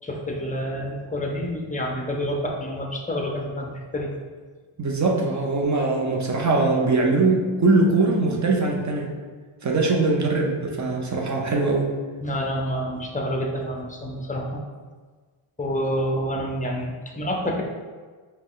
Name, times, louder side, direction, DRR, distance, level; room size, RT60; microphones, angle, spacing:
voice 1, 0.0-4.1 12.2-14.6 15.6-17.6, equal, 15° left, 0 dB, 0.6 m, -28 dB
voice 2, 4.8-9.1 9.6-11.9, right 3 dB, 35° right, -1 dB, 0.8 m, -21 dB
5.2 x 2.3 x 3.7 m, 1.5 s
wide cardioid pair, 95°, 50 cm